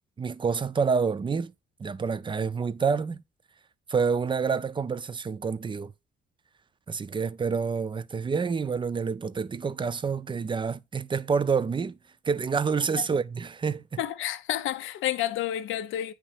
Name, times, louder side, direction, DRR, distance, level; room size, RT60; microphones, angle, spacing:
voice 1, 0.2-1.5 1.8-3.2 3.9-5.9 6.9-12.0 12.2-14.0, right 5 dB, 25° right, 0.4 m, -28 dB
voice 2, 14.0-16.1, left 12 dB, 80° left, 0.6 m, -30 dB
9.0 x 3.2 x 3.3 m
cardioid pair, 90°, 20 cm